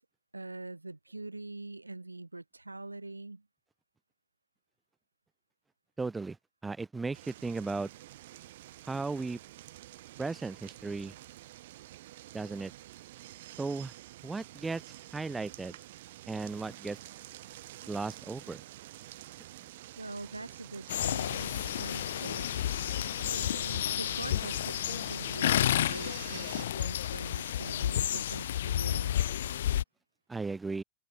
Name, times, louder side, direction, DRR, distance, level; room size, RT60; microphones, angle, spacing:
voice 1, 0.3-3.4 20.0-22.8 23.3-25.6 25.8-29.3, right 2 dB, 85° right, 2.7 m, -43 dB
voice 2, 6.0-6.4 6.6-7.9 8.8-9.4 10.2-11.1 12.3-12.7 13.6-13.9 14.2-14.8 15.1-15.8 16.3-17.0 17.9-18.6 30.3-30.8, right 3 dB, 10° right, 2.9 m, -35 dB
sound 1, 7.1-26.7, right 15 dB, 55° right, 2.6 m, -49 dB
sound 2, 20.9-29.8, left 11 dB, 60° left, 0.8 m, -31 dB
open air
figure-of-eight pair, 90°, 0 cm